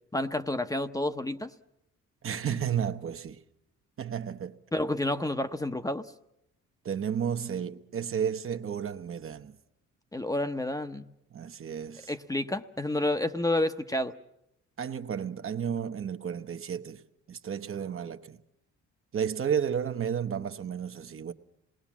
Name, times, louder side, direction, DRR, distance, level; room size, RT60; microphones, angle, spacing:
voice 1, 0.1-1.5 4.7-6.1 10.1-11.0 12.1-14.1, left 1 dB, 10° left, 0.8 m, -29 dB
voice 2, 2.2-3.4 4.0-4.6 6.8-9.6 11.3-12.1 14.8-17.0 17.3-18.4 19.1-21.3, right 8 dB, 45° right, 1.0 m, -32 dB
26.5 x 20.0 x 7.3 m
cardioid pair, 90°, 30 cm